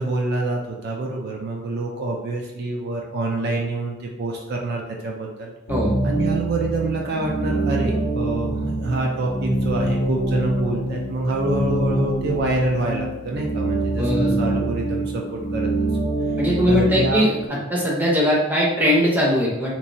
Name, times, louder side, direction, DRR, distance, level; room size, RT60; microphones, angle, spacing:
voice 1, 0.0-5.5 6.0-15.8 16.7-17.2, right 2 dB, 50° right, -1 dB, 0.4 m, -26 dB
sound 1, 5.7-17.5, right 1 dB, 65° left, 0.6 m, -25 dB
voice 2, 14.0-14.4 16.4-17.4 17.7-19.8, equal, 10° right, -4 dB, 0.6 m, -20 dB
3.0 x 2.5 x 2.6 m, 1.0 s
head